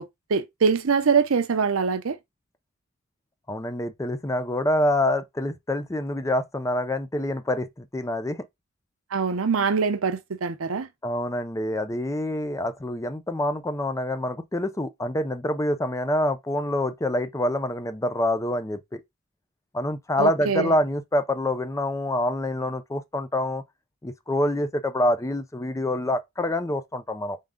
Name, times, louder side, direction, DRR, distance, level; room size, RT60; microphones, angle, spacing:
voice 1, 0.0-2.2 9.1-10.9 20.2-20.7, right 5 dB, 80° right, 0.6 m, -24 dB
voice 2, 3.5-8.5 11.0-19.0 19.7-23.6 24.0-27.4, left 1 dB, 15° left, 0.5 m, -26 dB
3.8 x 3.7 x 3.6 m
head